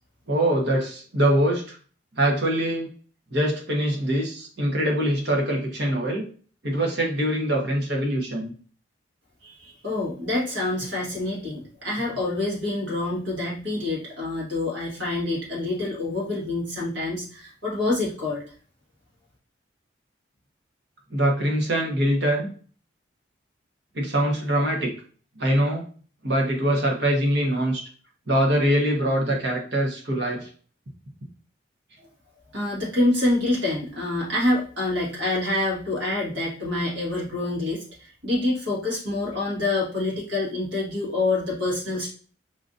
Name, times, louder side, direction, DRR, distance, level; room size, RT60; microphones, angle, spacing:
voice 1, 0.3-1.8 2.2-2.9 3.3-6.3 6.6-8.5 21.1-22.5 23.9-24.9 25.4-25.8 26.2-27.8 28.3-30.5, right 1 dB, 60° right, -1 dB, 1.1 m, -23 dB
voice 2, 9.4-18.4 32.5-42.1, left 2 dB, 75° right, -3 dB, 1.7 m, -26 dB
4.8 x 2.6 x 2.6 m, 0.41 s
head